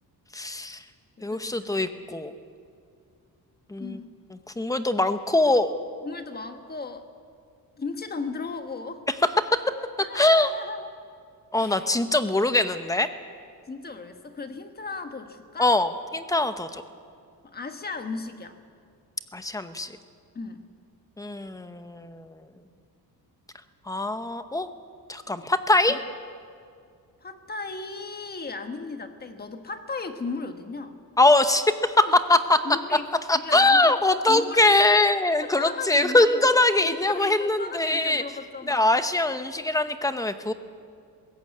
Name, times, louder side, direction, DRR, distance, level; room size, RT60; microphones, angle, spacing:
voice 1, 0.3-0.8 1.2-2.3 3.7-4.0 4.6-5.7 9.5-9.6 10.2-10.5 11.5-13.1 15.6-16.8 19.3-19.9 21.2-22.3 23.9-24.7 25.1-26.0 31.2-32.6 33.3-38.2 38.7-40.5, left 2 dB, 10° left, 10 dB, 0.8 m, -22 dB
voice 2, 1.2-2.0 3.8-4.1 6.0-7.1 7.8-9.0 10.0-10.9 11.5-11.9 13.7-15.7 17.4-18.6 20.3-20.6 25.9-26.0 27.2-31.0 32.0-32.2 32.6-33.1 33.3-34.0 34.3-34.7 35.4-36.5 36.8-39.0, left 4 dB, 25° left, 7 dB, 1.3 m, -36 dB
21.0 x 17.5 x 8.5 m, 2.2 s
cardioid pair, 165°, 38 cm